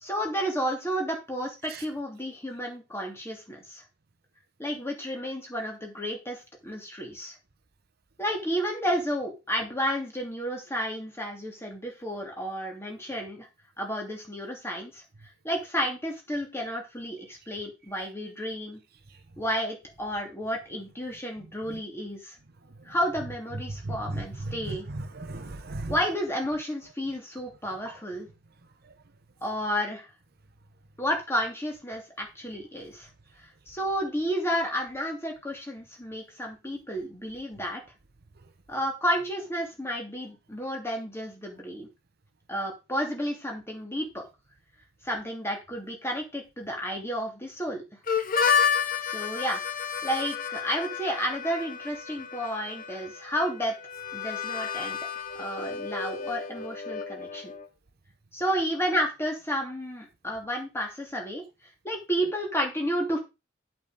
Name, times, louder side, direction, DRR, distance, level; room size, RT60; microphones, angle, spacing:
voice 1, 0.0-3.8 4.6-7.3 8.2-13.5 13.8-15.0 15.4-18.8 19.4-22.4 22.8-24.9 25.9-28.3 29.4-30.1 31.0-33.1 33.4-37.8 38.7-41.9 42.5-44.2 45.0-47.8 49.0-49.6 50.0-53.7 54.1-55.0 55.4-57.5 58.3-61.4 61.8-63.2, equal, 10° left, 3.0 m, -31 dB
voice 2, 23.8-25.9, right 2 dB, 50° right, 0.9 m, -35 dB
Harmonica, 48.1-57.7, left 6 dB, 45° left, 1.1 m, -31 dB
8.2 x 6.9 x 5.2 m
head